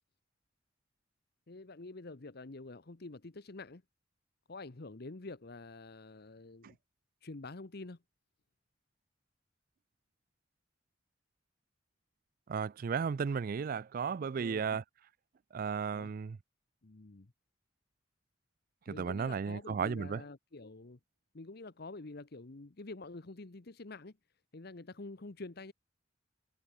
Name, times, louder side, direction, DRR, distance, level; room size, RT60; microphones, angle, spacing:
voice 1, 1.5-3.8 4.5-6.8 7.2-8.0 14.4-14.8 15.9-16.1 16.8-17.3 18.9-21.0 21.3-24.2 24.5-25.7, left 2 dB, 55° left, 1.0 m, -47 dB
voice 2, 12.5-14.8 15.5-16.4 18.9-20.2, right 6 dB, 45° right, 0.3 m, -34 dB
head